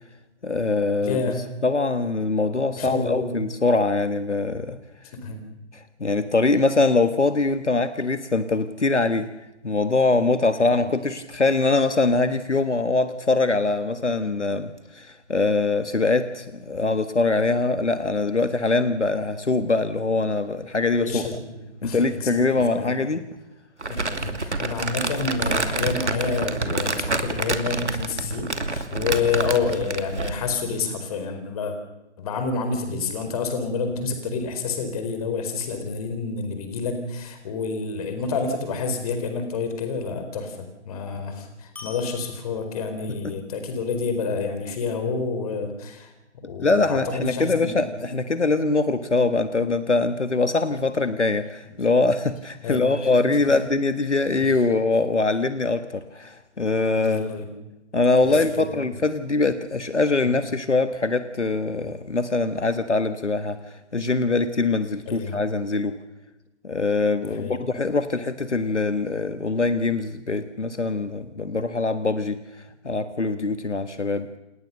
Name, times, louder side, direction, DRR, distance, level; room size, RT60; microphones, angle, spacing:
voice 1, 0.4-1.2 1.6-4.8 5.7-9.3 9.6-21.3 21.8-23.2 46.6-57.3 57.9-66.0 66.6-72.4 72.8-74.3, left 3 dB, 75° left, 10 dB, 1.6 m, -23 dB
voice 2, 1.0-1.5 2.8-3.3 5.1-5.4 10.7-10.9 21.0-22.9 23.9-31.8 32.2-46.1 46.4-48.0 52.6-53.5 54.4-54.5 57.0-57.5 58.2-58.8 60.2-60.4 65.1-65.3 67.2-67.6, left 4 dB, 30° left, 7 dB, 4.5 m, -29 dB
Crumpling crinkling, 23.8-30.4, right 3 dB, 70° right, 2.7 m, -28 dB
sound 1, 38.2-38.9 41.8-43.2, left 4 dB, 5° left, 6.5 m, -46 dB
29.0 x 18.0 x 6.7 m, 0.95 s
figure-of-eight pair, 140°, 36 cm